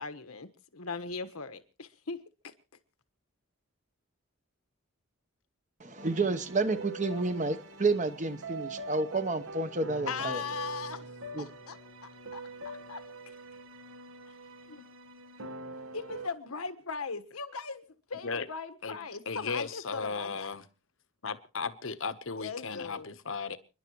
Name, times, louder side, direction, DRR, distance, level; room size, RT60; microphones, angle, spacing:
voice 1, 0.0-2.2 10.1-11.0 11.4-11.8 12.3-12.4 12.9-13.0 14.7-14.8 15.9-17.8 18.1-20.5 22.4-23.2, left 5 dB, 90° left, 1.4 m, -39 dB
voice 2, 5.8-10.4 11.3-11.5, right 3 dB, 35° right, 0.9 m, -30 dB
sound 1, 6.0-16.3, right 2 dB, 70° right, 1.3 m, -44 dB
voice 3, 19.3-20.7 21.2-23.6, left 5 dB, 65° left, 1.0 m, -35 dB
30.0 x 11.0 x 3.1 m
head